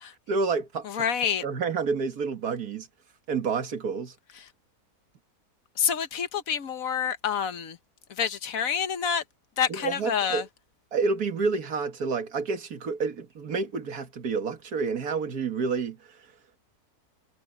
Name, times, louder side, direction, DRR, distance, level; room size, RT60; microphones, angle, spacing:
voice 1, 0.3-1.0 1.4-2.9 3.3-4.1 9.7-10.5 10.9-16.0, right 4 dB, 80° right, 2.1 m, -29 dB
voice 2, 0.9-1.4 5.8-7.8 8.2-9.2 9.6-10.4, left 7 dB, 65° left, 1.4 m, -27 dB
omnidirectional pair, 1.6 m